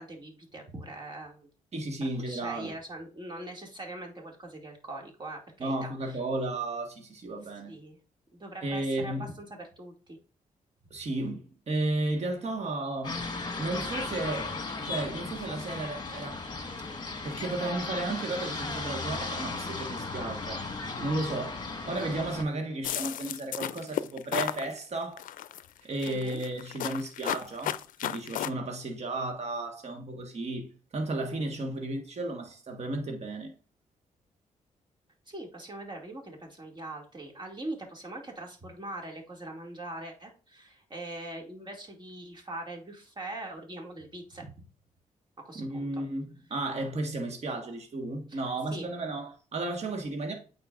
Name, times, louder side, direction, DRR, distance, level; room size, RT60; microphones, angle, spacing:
voice 1, 0.0-1.5 2.2-6.2 7.7-8.0 8.3-10.2 16.5-16.7 26.0-26.4 35.3-44.5 45.4-46.0 48.3-48.4 48.7-48.9, right 2 dB, 35° right, 2.3 m, -42 dB
voice 2, 1.7-2.7 5.6-7.7 8.6-9.3 10.9-13.2 13.6-16.4 17.2-20.6 21.0-25.3 25.8-33.5 45.5-50.3, right 2 dB, 50° right, 1.5 m, -33 dB
sound 1, 13.0-22.4, left 3 dB, 30° left, 1.5 m, -36 dB
sound 2, 22.8-24.6 25.2-25.6 26.0-28.5, left 12 dB, 75° left, 0.4 m, -33 dB
8.7 x 4.4 x 2.5 m
supercardioid pair, 60°, 14 cm